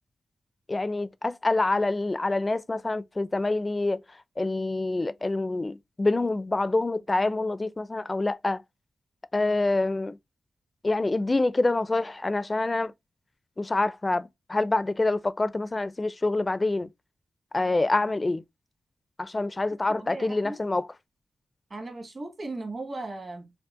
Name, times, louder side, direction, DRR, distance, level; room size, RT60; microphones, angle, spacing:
voice 1, 0.7-4.0 4.4-8.6 9.3-10.2 10.8-12.9 13.6-16.9 17.5-18.4 19.2-20.9, left 2 dB, 30° left, 0.4 m, -26 dB
voice 2, 19.9-20.6 21.7-23.5, right 2 dB, 50° right, 1.4 m, -37 dB
5.5 x 2.1 x 2.4 m
cardioid pair, 70°, 0 cm